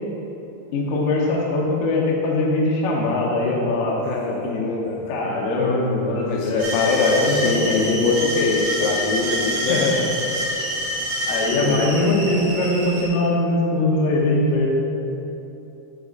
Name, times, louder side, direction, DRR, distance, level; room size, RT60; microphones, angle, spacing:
voice 1, 0.7-4.0 4.3-4.5 5.1-8.1 9.7-10.0 11.3-14.7, left 2 dB, 65° left, -3 dB, 2.7 m, -22 dB
voice 2, 4.0-5.0 6.3-10.0 11.6-11.9, left 4 dB, 80° left, -1 dB, 2.8 m, -23 dB
sound 1, 6.6-13.0, equal, 70° right, 2.9 m, -27 dB
9.7 x 8.1 x 3.9 m, 2.9 s
omnidirectional pair, 4.7 m